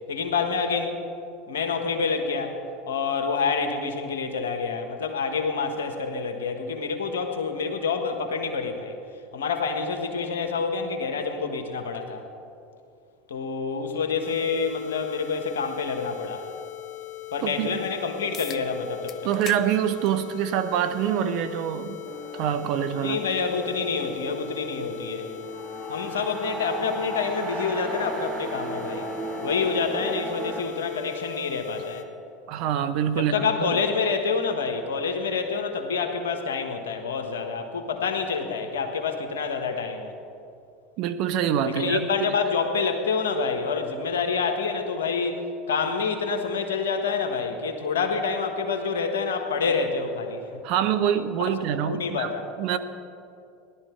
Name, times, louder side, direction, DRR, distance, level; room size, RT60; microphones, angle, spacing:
voice 1, 0.1-1.0 1.5-2.6 2.9-9.0 9.3-12.2 13.3-16.5 17.3-19.3 23.0-25.3 25.9-29.1 29.4-32.1 33.1-40.1 41.6-50.4 51.4-51.6 51.8-52.4, left 5 dB, 80° left, 6 dB, 1.3 m, -27 dB
sound 1, 14.2-32.0, left 17 dB, 65° left, 1.0 m, -40 dB
voice 2, 17.4-17.8 19.2-22.0 22.3-23.2 32.5-33.8 41.0-42.3 50.6-52.8, right 9 dB, 60° right, 12 dB, 0.8 m, -26 dB
sound 2, 18.3-18.6 19.1-19.6 20.0-20.2 21.3-21.4 26.3-26.4, left 10 dB, 45° left, 0.6 m, -38 dB
sound 3, 22.1-30.6, right 2 dB, 30° right, 1.9 m, -36 dB
17.0 x 12.0 x 4.5 m, 2.5 s
hypercardioid pair, 85°, 0 cm